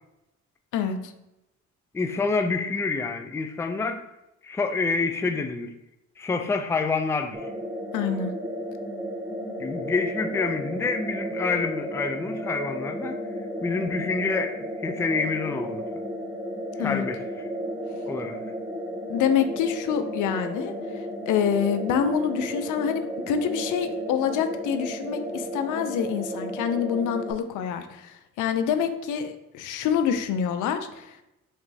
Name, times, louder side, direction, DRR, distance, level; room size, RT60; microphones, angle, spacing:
voice 1, 0.7-1.1 7.9-8.3 16.8-17.0 19.1-31.2, left 8 dB, 85° left, 9 dB, 0.5 m, -26 dB
voice 2, 1.9-4.0 4.4-5.7 6.2-7.5 9.6-13.2 13.6-15.9 16.8-17.5 18.1-18.4, left 4 dB, 10° left, 7 dB, 0.3 m, -27 dB
sound 1, 7.3-27.3, equal, 10° right, 0.8 m, -33 dB
4.9 x 3.2 x 2.7 m, 0.89 s
cardioid pair, 90°, 30 cm